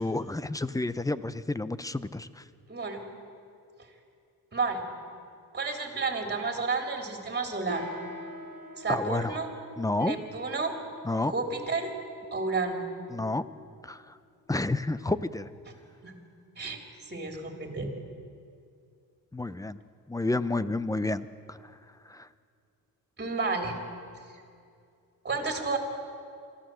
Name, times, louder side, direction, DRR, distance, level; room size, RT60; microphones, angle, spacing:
voice 1, 0.0-2.4 8.9-9.3 9.8-10.2 11.0-11.3 13.1-13.4 13.8-14.2 14.5-15.5 19.3-19.8 20.1-21.6 22.1-22.3, left 2 dB, 10° left, 15 dB, 0.6 m, -30 dB
voice 2, 2.7-3.0 4.5-4.8 5.5-7.8 8.8-9.5 10.0-10.7 11.2-11.9 12.3-12.9 16.0-16.1 16.6-16.8 17.1-17.9 23.2-23.8 25.2-25.8, right 4 dB, 30° right, 3 dB, 3.4 m, -31 dB
sound 1, 7.6-15.4, left 1 dB, 60° left, 3.7 m, -47 dB
24.0 x 14.0 x 7.7 m, 2.4 s
cardioid pair, 95°, 35 cm